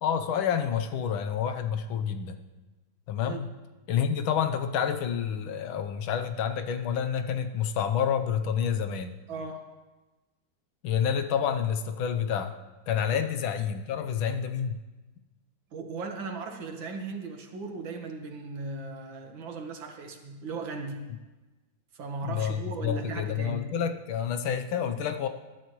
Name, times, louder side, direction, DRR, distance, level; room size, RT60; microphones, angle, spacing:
voice 1, 0.0-2.4 3.1-3.5 3.9-9.2 10.8-12.6 12.9-14.8 22.2-25.3, left 8 dB, 90° left, 7 dB, 1.7 m, -28 dB
voice 2, 9.3-9.7 15.7-21.1 21.9-23.7, right 3 dB, 75° right, 4 dB, 2.1 m, -37 dB
20.5 x 12.0 x 3.1 m, 1.2 s
omnidirectional pair, 2.1 m